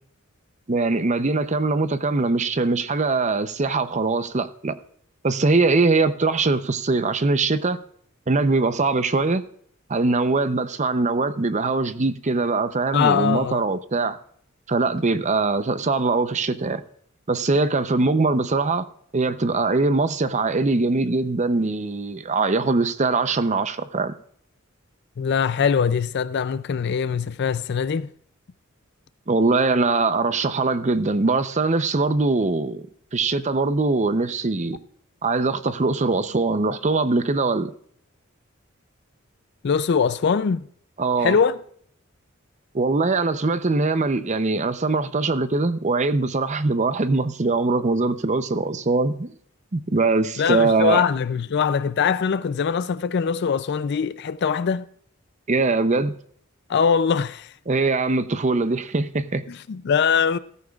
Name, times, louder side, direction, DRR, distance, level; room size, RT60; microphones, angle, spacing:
voice 1, 0.7-4.8 5.2-7.8 8.3-9.4 9.9-14.2 14.7-16.8 17.3-18.9 19.1-24.1 29.3-32.9 33.1-34.8 35.2-37.7 41.0-41.4 42.7-49.3 49.7-51.0 55.5-56.1 57.7-59.4, right 3 dB, 35° right, 0.6 m, -22 dB
voice 2, 12.9-13.7 25.2-28.1 39.6-40.6 41.2-41.6 50.4-54.9 56.7-57.5 59.5-60.4, left 6 dB, 55° left, 0.4 m, -22 dB
15.5 x 13.5 x 2.4 m
head